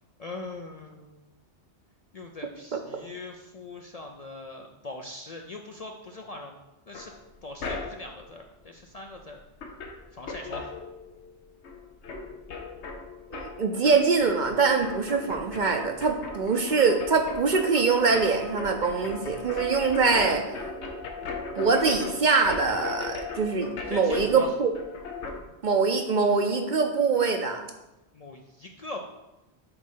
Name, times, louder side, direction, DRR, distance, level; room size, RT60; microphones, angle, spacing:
voice 1, 0.2-1.3 2.1-6.6 6.9-7.1 7.4-9.4 10.1-10.7 23.9-24.5 28.1-29.0, left 2 dB, 50° left, 2 dB, 0.5 m, -41 dB
sound 1, 6.9-8.2 9.2-9.3 9.5-11.4 11.6-25.4, left 3 dB, 90° left, 1.1 m, -38 dB
voice 2, 13.3-20.4 21.6-24.7 25.6-27.6, right 4 dB, 50° right, 5 dB, 0.7 m, -23 dB
7.8 x 3.2 x 5.5 m, 0.98 s
omnidirectional pair, 1.1 m